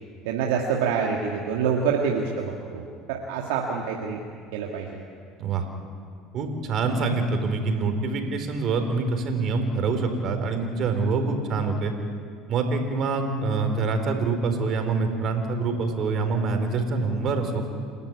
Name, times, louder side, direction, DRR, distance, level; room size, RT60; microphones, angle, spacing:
voice 1, 0.3-4.2 4.5-5.0, right 6 dB, 70° right, 0 dB, 2.0 m, -26 dB
voice 2, 6.3-11.9 12.5-17.6, right 4 dB, 50° right, 6 dB, 4.1 m, -25 dB
29.0 x 12.0 x 9.7 m, 2.2 s
hypercardioid pair, 70°, 0 cm